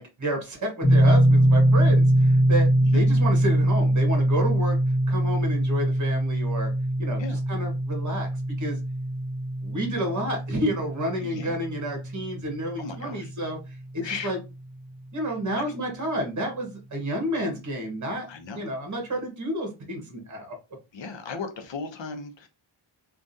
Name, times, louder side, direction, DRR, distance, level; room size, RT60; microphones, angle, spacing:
voice 1, 0.0-4.8 5.1-6.7 7.0-7.2 7.5-8.3 8.6-8.8 9.6-13.6 13.9-14.4 15.1-18.3 18.5-20.6, equal, 35° right, 3 dB, 1.3 m, -30 dB
sound 1, 0.8-13.7, right 1 dB, 15° left, 1.0 m, -23 dB
voice 2, 11.2-11.5 12.8-13.3 14.0-14.4 15.6-15.7 18.3-18.6 20.9-22.5, left 4 dB, 65° left, 6 dB, 0.8 m, -36 dB
3.5 x 2.5 x 2.6 m, 0.27 s
wide cardioid pair, 120°, 49 cm